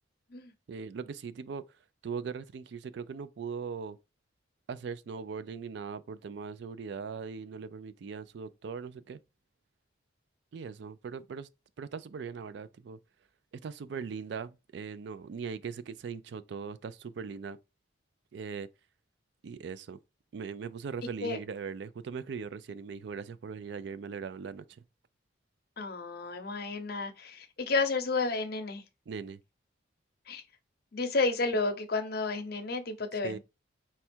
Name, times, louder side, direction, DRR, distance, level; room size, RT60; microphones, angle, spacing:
voice 1, 0.7-1.6 2.0-4.0 4.7-9.2 10.5-11.5 11.8-13.0 13.6-17.6 18.3-18.7 19.4-20.0 20.3-24.8 29.1-29.4 33.2-33.4, right 5 dB, 60° right, 0.3 m, -40 dB
voice 2, 25.8-28.8 30.3-30.4 30.9-33.4, left 3 dB, 50° left, 0.7 m, -31 dB
4.3 x 2.3 x 4.3 m
head